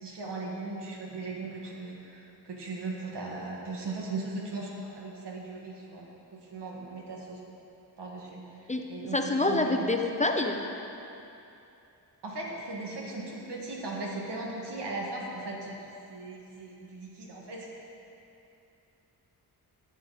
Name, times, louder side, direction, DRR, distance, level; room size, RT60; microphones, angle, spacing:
voice 1, 0.0-6.1 6.3-7.4 8.0-9.7 12.2-17.7, right 2 dB, 85° right, -2 dB, 2.0 m, -38 dB
voice 2, 9.1-10.6, left 2 dB, 20° left, 3 dB, 0.6 m, -26 dB
13.5 x 8.6 x 4.2 m, 2.8 s
wide cardioid pair, 140°, 40 cm